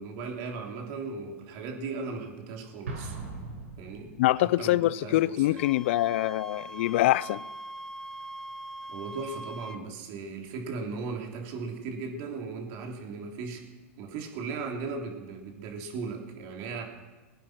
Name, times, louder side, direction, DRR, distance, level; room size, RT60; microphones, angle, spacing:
voice 1, 0.0-3.2 3.8-5.6 8.9-13.6 14.0-16.8, right 4 dB, 50° right, 3.3 m, -37 dB
Explosion, 2.9-4.5, right 3 dB, 90° right, 5.1 m, -39 dB
voice 2, 4.2-7.4, left 16 dB, 60° left, 0.4 m, -24 dB
Wind instrument woodwind instrument, 5.5-9.8, right 1 dB, 10° left, 0.7 m, -42 dB
21.0 x 9.2 x 6.1 m
hypercardioid pair, 110°, 7 cm